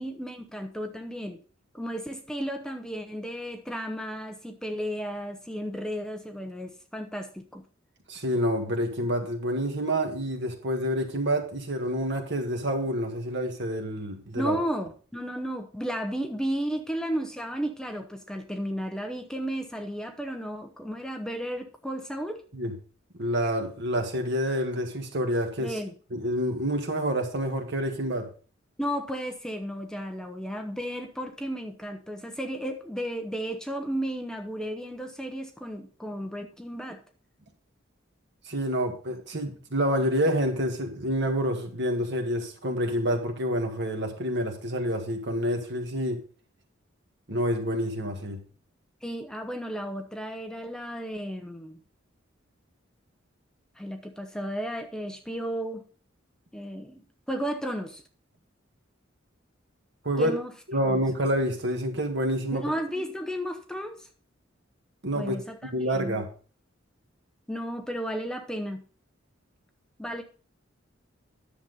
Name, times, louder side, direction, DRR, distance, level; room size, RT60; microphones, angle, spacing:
voice 1, 0.0-1.4 1.7-7.6 14.4-22.4 25.6-25.9 28.8-37.0 49.0-51.8 53.8-55.8 56.5-58.0 60.2-60.5 60.8-61.0 62.5-64.0 65.1-66.2 67.5-68.8 70.0-70.2, equal, 5° left, 0.8 m, -33 dB
voice 2, 8.1-14.6 22.5-22.7 23.1-25.8 26.1-28.3 38.5-46.2 47.3-48.4 60.0-60.4 60.7-62.6 65.0-65.4 65.7-66.3, equal, 60° right, 1.8 m, -28 dB
10.5 x 7.1 x 4.0 m
head